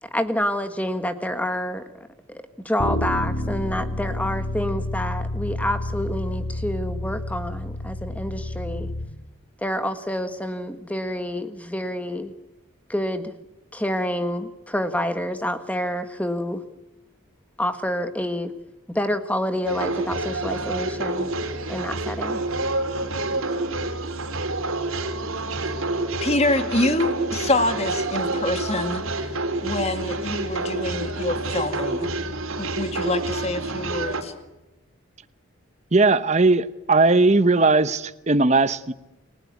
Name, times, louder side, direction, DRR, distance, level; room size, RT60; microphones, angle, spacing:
voice 1, 0.0-8.9 9.6-12.3 12.9-13.3 13.7-16.6 17.6-18.5 18.9-21.3 21.7-22.4, equal, 5° left, 9 dB, 1.5 m, -28 dB
Bass guitar, 2.8-9.0, left 1 dB, 55° left, 3.8 m, -29 dB
sound 1, 19.7-34.2, right 2 dB, 80° right, 3.8 m, -28 dB
voice 2, 26.2-29.3 29.6-32.1 32.6-34.3, left 2 dB, 30° left, 8 dB, 2.1 m, -26 dB
voice 3, 35.9-38.9, right 3 dB, 30° right, 13 dB, 0.9 m, -18 dB
30.0 x 19.0 x 8.4 m, 1.0 s
head